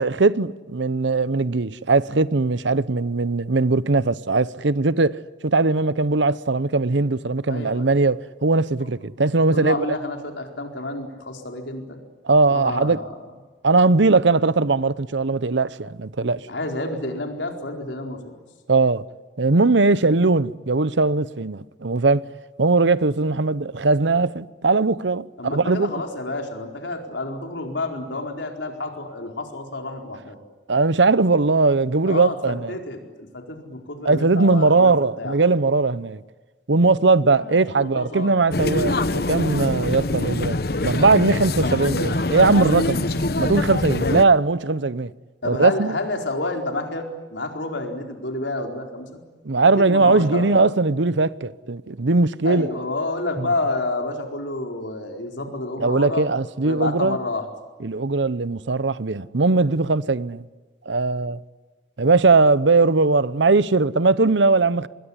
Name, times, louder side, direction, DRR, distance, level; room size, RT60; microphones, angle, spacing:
voice 1, 0.0-9.9 12.2-13.0 13.6-16.4 18.7-19.0 19.4-22.3 22.6-25.9 30.7-32.8 34.0-36.2 36.7-40.6 40.8-43.1 43.4-45.1 45.4-45.9 49.4-52.7 53.4-53.5 55.8-57.2 57.8-60.4 60.9-61.4 62.0-64.9, right 3 dB, 80° right, 0.8 m, -19 dB
voice 2, 7.5-8.0 9.5-12.0 12.5-13.2 16.2-18.3 25.4-30.4 32.0-34.9 35.2-35.4 37.3-38.3 45.4-49.2 49.6-50.6 52.4-56.2 56.6-57.5, left 2 dB, 85° left, 4.6 m, -29 dB
sound 1, 38.5-44.2, left 2 dB, 55° left, 1.0 m, -24 dB
26.5 x 21.5 x 9.8 m
head